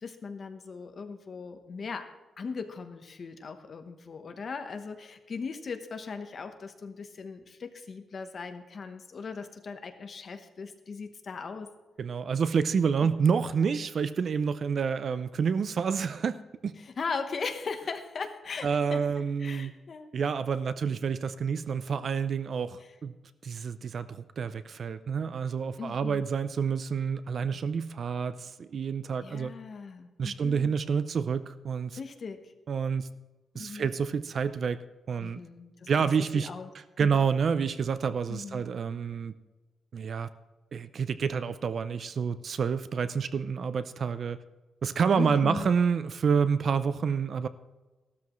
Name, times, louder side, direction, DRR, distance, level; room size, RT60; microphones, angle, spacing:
voice 1, 0.0-2.1 2.4-11.7 13.0-13.1 16.8-20.1 25.8-26.2 29.2-30.7 32.0-32.4 33.5-33.9 35.2-36.1 36.3-36.7 37.0-37.3 38.3-38.6 45.1-45.7, left 5 dB, 35° left, 7 dB, 1.0 m, -38 dB
voice 2, 12.0-16.7 18.6-19.7 20.1-23.1 23.4-29.5 30.2-32.0 32.7-33.1 33.6-34.8 35.1-35.4 35.9-36.5 37.0-39.3 39.9-40.3 40.7-44.4 44.8-47.5, right 6 dB, 45° right, 14 dB, 0.4 m, -28 dB
15.0 x 12.5 x 3.1 m, 1.2 s
wide cardioid pair, 175°, 0 cm